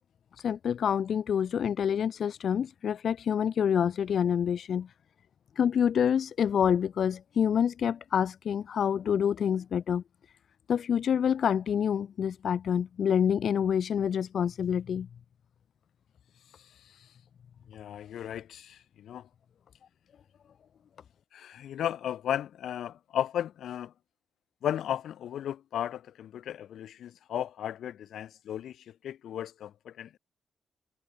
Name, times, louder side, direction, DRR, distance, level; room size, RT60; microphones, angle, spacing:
voice 1, 0.4-4.9 5.6-10.0 10.7-15.1, left 8 dB, 50° left, 0.7 m, -27 dB
voice 2, 16.6-17.1 17.7-19.3 21.3-23.9 24.6-30.2, left 10 dB, 70° left, 4.4 m, -35 dB
wide cardioid pair, 170°, 0 cm